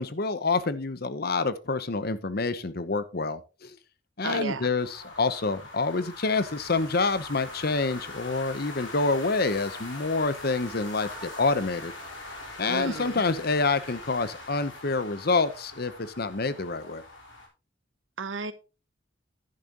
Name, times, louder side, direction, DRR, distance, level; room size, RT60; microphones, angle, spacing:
voice 1, 0.0-3.8 4.2-11.9 12.6-17.0, left 3 dB, 55° left, 0.9 m, -27 dB
voice 2, 4.2-4.7 12.7-13.2 18.2-18.5, right 3 dB, 80° right, 1.2 m, -33 dB
sound 1, 4.8-17.5, left 2 dB, 75° left, 4.5 m, -42 dB
11.0 x 10.5 x 3.0 m
head